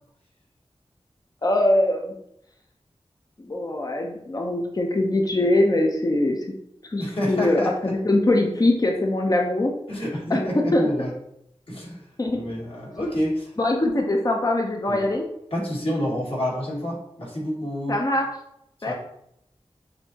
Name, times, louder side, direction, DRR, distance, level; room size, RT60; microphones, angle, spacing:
voice 1, 1.4-2.1 3.5-6.4 6.9-9.7 10.3-10.4 10.7-11.1 12.2-12.4 13.6-15.2 17.9-18.3 18.8-18.9, left 1 dB, 35° left, 2 dB, 0.7 m, -22 dB
voice 2, 7.0-7.9 9.9-11.1 11.7-12.0 12.3-13.5 14.9-15.1 15.5-18.0 18.8-18.9, equal, 60° left, -4 dB, 1.7 m, -28 dB
6.5 x 2.8 x 2.8 m, 0.76 s
wide cardioid pair, 50°, 11 cm